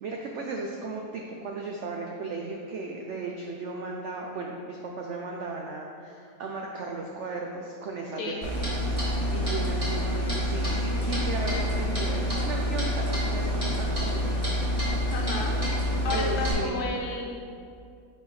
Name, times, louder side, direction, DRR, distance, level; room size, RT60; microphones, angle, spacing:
voice 1, 0.0-8.6 9.0-14.3 16.1-16.9, right 3 dB, 80° right, 0 dB, 0.6 m, -35 dB
Clock, 8.4-16.5, equal, 20° right, 1.5 m, -27 dB
voice 2, 15.1-15.6 16.0-17.2, left 3 dB, 80° left, 0 dB, 1.4 m, -32 dB
6.7 x 4.7 x 3.2 m, 2.4 s
omnidirectional pair, 1.8 m